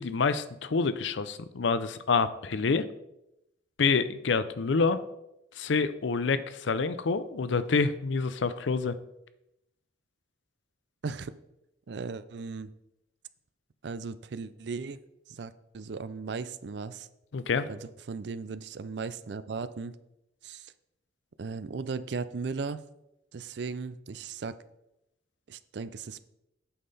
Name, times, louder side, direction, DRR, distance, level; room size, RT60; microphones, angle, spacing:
voice 1, 0.0-2.8 3.8-5.0 5.6-8.9 17.3-17.7, left 4 dB, 75° left, 14 dB, 0.5 m, -27 dB
voice 2, 11.0-11.3 11.9-12.7 13.8-15.0 15.3-17.1 17.7-20.0 20.4-20.7 21.4-22.8 23.3-24.6 25.5-26.3, right 4 dB, 65° right, 14 dB, 0.4 m, -37 dB
8.5 x 5.6 x 4.1 m, 0.86 s
head